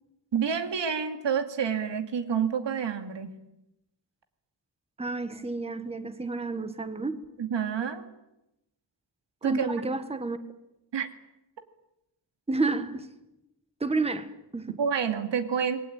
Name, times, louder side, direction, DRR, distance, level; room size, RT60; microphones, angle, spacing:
voice 1, 0.3-3.3 7.4-8.0 9.4-9.7 10.9-11.1 14.8-15.8, right 7 dB, 85° right, 7 dB, 2.6 m, -28 dB
voice 2, 5.0-7.2 9.4-10.4 12.5-13.1 13.8-14.8, right 3 dB, 15° right, 10 dB, 1.4 m, -30 dB
28.0 x 21.0 x 9.0 m, 0.91 s
wide cardioid pair, 180°, 42 cm